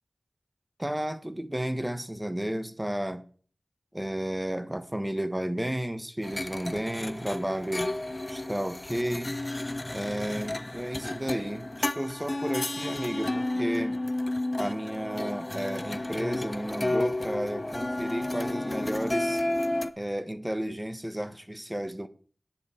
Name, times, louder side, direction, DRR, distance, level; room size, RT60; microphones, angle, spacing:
voice 1, 0.8-3.2 3.9-7.9 8.3-9.3 9.9-14.0 14.6-19.4 20.0-22.1, right 1 dB, 10° right, 1.3 m, -32 dB
sound 1, 6.2-19.9, left 1 dB, 30° left, 0.9 m, -32 dB
10.5 x 5.8 x 8.2 m
wide cardioid pair, 65°, 0 cm